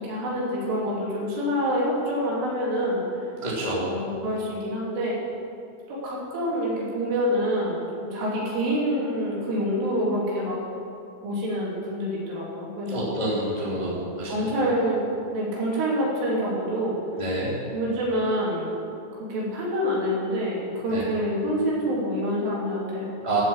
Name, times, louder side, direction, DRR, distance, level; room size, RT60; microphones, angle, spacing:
voice 1, 0.0-3.3 3.7-5.2 5.9-10.6 11.2-13.1 13.7-17.0 17.7-18.7 19.3-23.2, equal, 75° right, -6 dB, 5.7 m, -27 dB
voice 2, 3.4-3.9 12.9-14.4 17.2-17.5 20.9-21.0 23.2-23.4, right 1 dB, 15° left, -7 dB, 1.7 m, -28 dB
14.5 x 8.2 x 7.3 m, 2.6 s
omnidirectional pair, 5.6 m